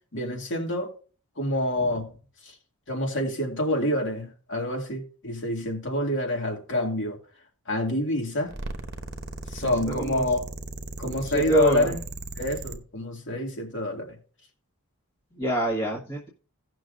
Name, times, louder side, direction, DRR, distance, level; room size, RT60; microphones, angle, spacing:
voice 1, 0.1-0.9 1.4-2.1 2.9-7.2 7.7-8.5 9.5-10.5 11.0-12.0 12.4-14.2, left 1 dB, 55° left, 2.4 m, -27 dB
sound 1, 8.4-12.8, right 2 dB, 50° right, 0.9 m, -37 dB
voice 2, 11.0-11.9 15.4-16.3, right 2 dB, 25° left, 1.7 m, -26 dB
17.0 x 6.1 x 2.6 m
head